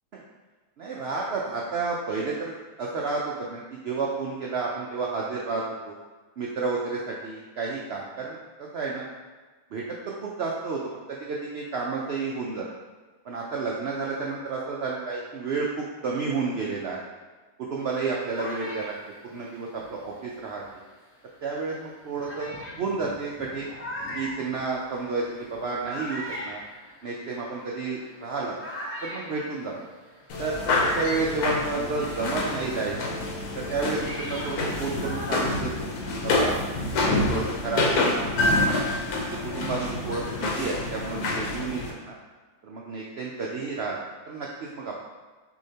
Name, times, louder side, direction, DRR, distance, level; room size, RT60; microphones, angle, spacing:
voice 1, 0.8-5.9 6.4-9.1 9.7-12.7 13.2-17.0 17.6-18.9 19.2-20.6 21.4-23.7 24.1-26.6 27.0-28.6 29.0-29.9 30.4-33.0 33.5-35.9 36.2-36.5 37.1-38.3 39.4-42.2 42.6-44.0 44.3-44.9, right 4 dB, 80° right, -3 dB, 0.5 m, -31 dB
sound 1, 17.9-20.9 21.6-21.7 22.2-32.2 32.5-36.2, equal, 20° left, 0.4 m, -40 dB
sound 2, 30.3-41.9, left 2 dB, 75° left, 1.2 m, -27 dB
6.3 x 2.8 x 2.8 m, 1.3 s
omnidirectional pair, 1.6 m